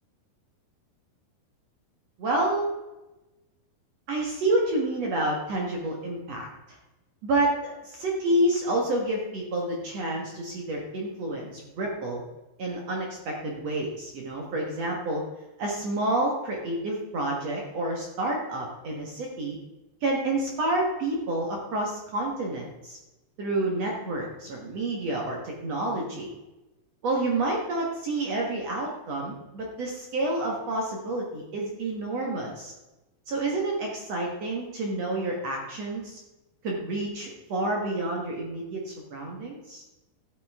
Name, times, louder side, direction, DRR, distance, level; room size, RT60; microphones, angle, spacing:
voice 1, 2.2-2.7 4.1-6.5 7.2-12.2 12.6-15.2 15.6-19.6 20.0-23.0 23.4-26.3 27.0-32.7 33.3-36.2 36.6-39.8, right 2 dB, 55° right, -1 dB, 1.9 m, -29 dB
13.0 x 8.5 x 3.6 m, 1.0 s
omnidirectional pair, 4.9 m